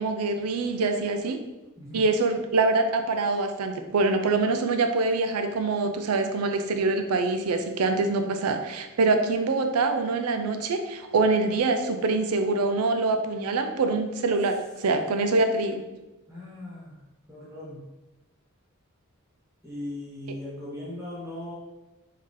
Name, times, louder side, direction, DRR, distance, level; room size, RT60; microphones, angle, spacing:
voice 1, 0.0-1.4 1.9-15.8, right 3 dB, 85° right, 7 dB, 0.4 m, -25 dB
voice 2, 16.3-17.0 17.3-17.8 19.6-21.5, left 1 dB, 15° right, -7 dB, 1.3 m, -38 dB
3.6 x 2.8 x 3.2 m, 1.0 s
head